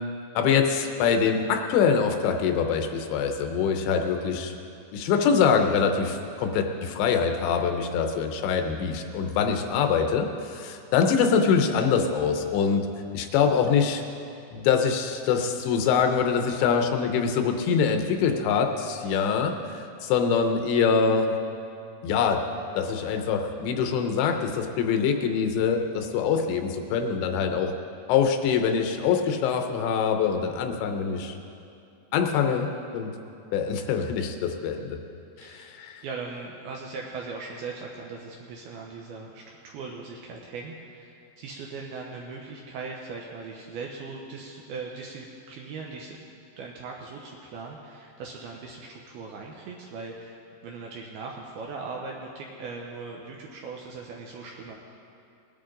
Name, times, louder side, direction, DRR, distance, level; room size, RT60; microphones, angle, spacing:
voice 1, 0.4-4.5 4.9-12.9 13.1-14.0 14.5-21.3 22.0-22.4 22.8-27.7 28.1-31.4 32.1-33.1 33.5-35.0 35.4-36.0, left 6 dB, 80° left, 5 dB, 2.9 m, -24 dB
voice 2, 35.4-35.7 36.0-46.2 46.6-54.8, right 4 dB, 80° right, -1 dB, 2.3 m, -39 dB
20.0 x 10.5 x 3.8 m, 2.6 s
omnidirectional pair, 5.3 m